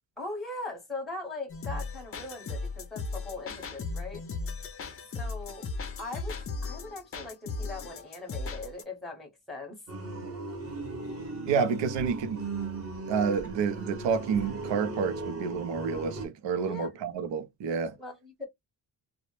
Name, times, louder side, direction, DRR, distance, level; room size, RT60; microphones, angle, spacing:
voice 1, 0.2-4.2 5.1-5.7 6.0-9.8 16.6-16.9 18.0-18.5, left 2 dB, ahead, 0.7 m, -40 dB
sound 1, 1.5-8.8, left 3 dB, 35° left, 0.4 m, -36 dB
sound 2, 9.9-16.3, right 3 dB, 35° right, 0.8 m, -37 dB
voice 2, 11.5-12.4 13.1-18.0, right 6 dB, 90° right, 0.6 m, -29 dB
2.1 x 2.0 x 2.9 m
wide cardioid pair, 160°, 42 cm